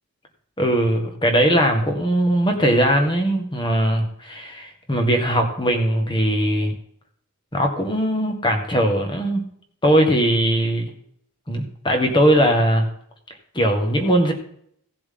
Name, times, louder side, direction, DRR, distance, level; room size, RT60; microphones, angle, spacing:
voice 1, 0.6-6.7 7.5-9.5 9.8-10.9 11.5-12.9 13.5-14.3, equal, 20° left, 3 dB, 1.8 m, -20 dB
17.0 x 7.6 x 3.9 m, 0.65 s
head